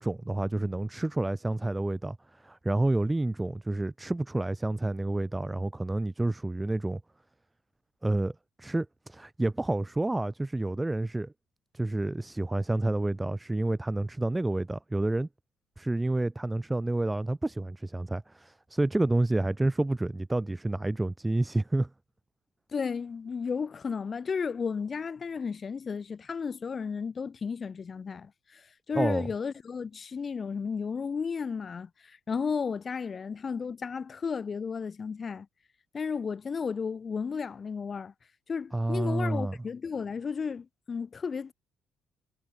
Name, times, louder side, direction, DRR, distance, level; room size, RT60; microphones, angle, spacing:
voice 1, 0.0-2.2 2.4-7.0 8.0-8.3 8.6-11.3 11.7-15.3 15.8-21.9 28.9-29.3 38.7-39.5, right 2 dB, 10° right, 0.4 m, -29 dB
voice 2, 22.7-35.5 35.9-38.1 38.5-41.5, left 5 dB, 35° left, 1.0 m, -33 dB
cardioid pair, 105°, 0 cm